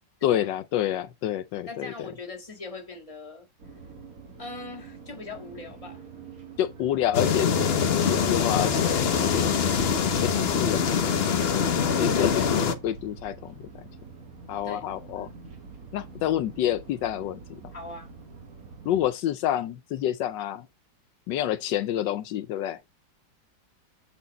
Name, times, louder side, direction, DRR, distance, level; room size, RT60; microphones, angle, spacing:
voice 1, 0.2-1.9 6.6-7.7 8.1-9.6 10.2-11.0 12.0-13.6 14.5-15.3 15.9-17.6 18.8-20.7 21.3-22.8, left 11 dB, 80° left, 1.3 m, -28 dB
voice 2, 1.7-3.5 4.4-6.0 12.1-12.8 14.6-14.9 17.7-18.1, left 3 dB, 20° left, 1.9 m, -41 dB
sound 1, 3.6-19.1, right 4 dB, 50° right, 2.1 m, -46 dB
sound 2, 7.1-12.7, left 6 dB, 50° left, 0.8 m, -24 dB
7.6 x 4.4 x 4.0 m
omnidirectional pair, 1.9 m